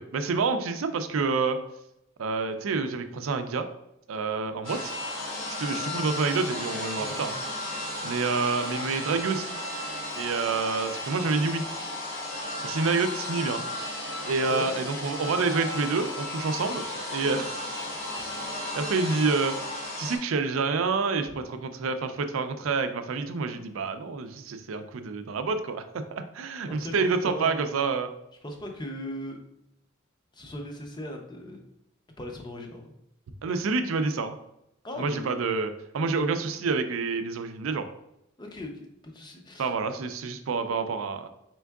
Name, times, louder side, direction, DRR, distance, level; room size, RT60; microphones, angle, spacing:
voice 1, 0.0-1.6 2.2-3.7 4.1-4.9 5.6-7.4 7.6-9.6 10.2-11.6 12.6-13.6 14.3-16.8 17.1-17.5 18.7-19.6 20.0-28.1 33.4-34.3 35.0-37.9 39.6-41.3, right 4 dB, 85° right, 9 dB, 0.4 m, -28 dB
sound 1, 4.6-20.2, left 1 dB, 70° left, 1.2 m, -34 dB
voice 2, 7.0-7.3 14.5-14.7 21.3-21.4 26.7-27.6 28.4-29.4 30.3-31.6 32.2-32.9 34.8-35.4 38.4-39.7, equal, 20° left, 3 dB, 0.6 m, -38 dB
4.4 x 3.5 x 2.3 m, 0.81 s
head